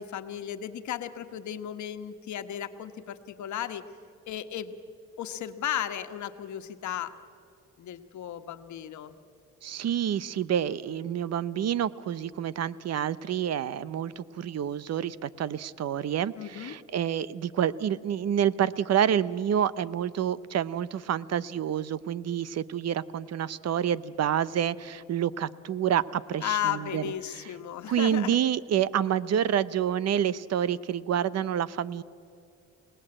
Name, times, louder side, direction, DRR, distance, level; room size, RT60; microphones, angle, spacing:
voice 1, 0.0-3.8 4.3-4.8 5.2-7.1 7.8-9.1 16.4-16.7 26.4-28.4, left 10 dB, 70° left, 9 dB, 1.4 m, -34 dB
voice 2, 9.6-27.4 27.9-32.0, right 9 dB, 55° right, 18 dB, 0.8 m, -28 dB
28.5 x 18.5 x 8.9 m, 2.6 s
cardioid pair, 90°, 30 cm